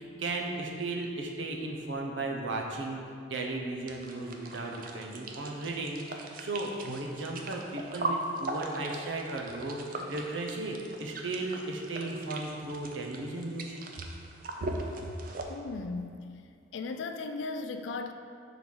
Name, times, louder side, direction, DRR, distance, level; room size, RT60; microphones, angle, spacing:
voice 1, 0.0-3.0 3.3-13.8 14.6-14.7, right 2 dB, 85° right, 1 dB, 0.7 m, -35 dB
sound 1, 3.9-15.5, right 2 dB, 50° right, 0.5 m, -40 dB
voice 2, 15.5-16.2 16.7-18.1, left 3 dB, 75° left, 7 dB, 0.4 m, -36 dB
4.7 x 4.0 x 5.4 m, 2.3 s
head